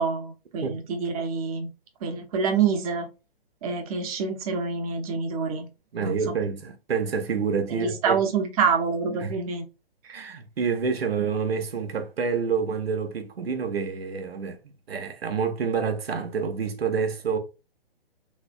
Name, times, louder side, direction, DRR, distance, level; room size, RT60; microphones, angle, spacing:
voice 1, 0.0-1.7 2.0-3.1 3.6-5.7 6.0-6.1 7.7-9.6 10.1-10.2, right 5 dB, 35° right, 0.9 m, -26 dB
voice 2, 5.9-8.2 9.2-9.3 10.1-14.6 14.9-17.4, right 6 dB, 75° right, 1.0 m, -28 dB
3.3 x 3.3 x 2.4 m
hypercardioid pair, 135°, 30 cm